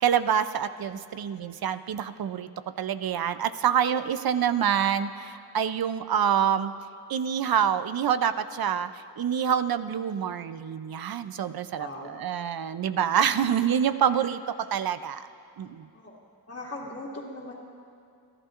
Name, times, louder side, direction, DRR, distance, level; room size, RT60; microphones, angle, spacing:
voice 1, 0.0-2.5 2.8-6.7 7.1-8.9 9.2-11.9 12.2-15.3 15.6-15.9, right 8 dB, 75° right, 12 dB, 0.6 m, -26 dB
voice 2, 11.7-12.3 15.9-16.2 16.5-17.5, left 1 dB, 40° left, -7 dB, 2.3 m, -39 dB
29.0 x 11.0 x 2.5 m, 2.6 s
cardioid pair, 65°, 37 cm